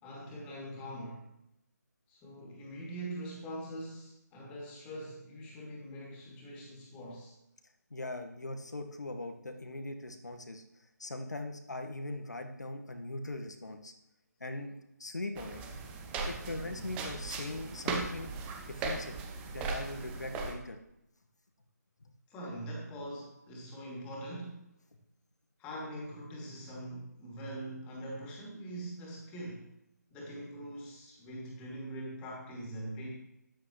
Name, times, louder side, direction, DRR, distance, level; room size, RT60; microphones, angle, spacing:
voice 1, 0.0-1.3 2.1-7.3 22.3-24.6 25.6-29.7 30.1-33.1, right 1 dB, 15° left, -3 dB, 2.8 m, -43 dB
voice 2, 7.9-10.6 11.0-13.9 14.4-14.7 15.0-15.6 16.3-18.3 18.6-19.2 19.4-20.8 22.0-22.1, left 2 dB, 70° left, 5 dB, 1.5 m, -40 dB
sound 1, 15.4-20.5, right 4 dB, 10° right, 0.9 m, -38 dB
13.0 x 11.0 x 3.2 m, 0.84 s
figure-of-eight pair, 150°, 10 cm